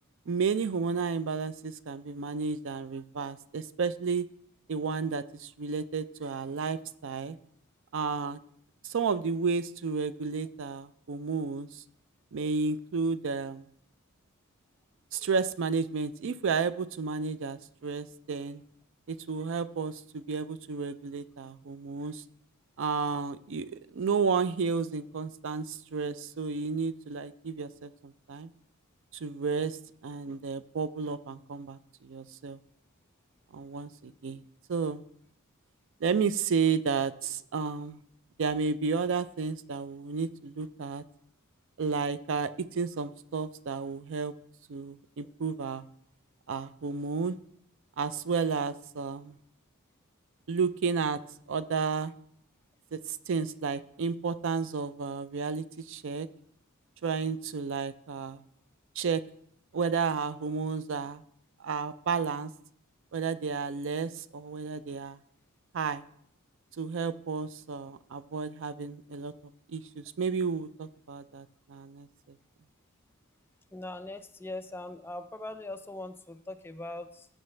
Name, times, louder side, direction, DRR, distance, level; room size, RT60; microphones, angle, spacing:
voice 1, 0.3-4.3 4.7-7.4 7.9-8.4 8.8-11.8 12.3-13.7 15.1-18.6 19.1-22.2 22.8-28.5 29.2-32.6 33.5-34.4 34.7-35.0 36.0-38.0 38.4-41.0 41.8-44.3 44.7-45.8 46.5-47.4 48.0-49.4 50.5-51.2 51.5-52.1 52.9-56.3 57.0-58.4 59.0-59.2 59.7-61.2 61.6-62.5 63.1-65.2 65.7-66.0 66.8-69.3 69.7-72.1, right 5 dB, 60° right, 14 dB, 0.4 m, -32 dB
voice 2, 73.7-77.3, left 2 dB, 10° left, 8 dB, 0.4 m, -41 dB
15.5 x 6.5 x 3.2 m, 0.68 s
head